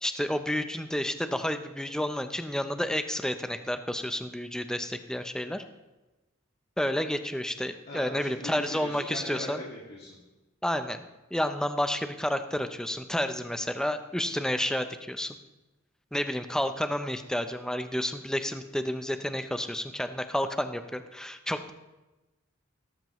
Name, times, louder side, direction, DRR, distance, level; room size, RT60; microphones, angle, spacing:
voice 1, 0.0-5.6 6.8-9.6 10.6-11.0 11.3-15.4 16.1-21.7, left 1 dB, 5° left, 8 dB, 0.5 m, -30 dB
voice 2, 7.9-10.2, left 1 dB, 50° left, -5 dB, 2.2 m, -40 dB
17.0 x 13.5 x 3.1 m, 1.1 s
head